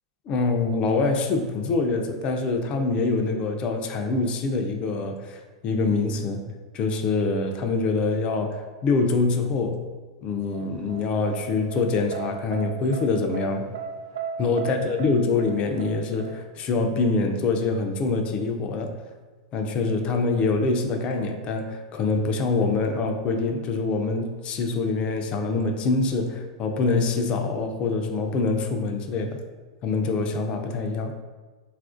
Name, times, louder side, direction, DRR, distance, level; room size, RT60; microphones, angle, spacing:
voice 1, 0.3-6.5 6.7-9.8 10.2-13.7 14.4-18.9 19.5-29.4 29.8-31.1, left 3 dB, 35° left, 4 dB, 0.4 m, -25 dB
sound 1, 10.5-16.4, right 7 dB, 75° right, 0.5 m, -36 dB
4.0 x 2.4 x 2.5 m, 1.4 s
hypercardioid pair, 115°, 3 cm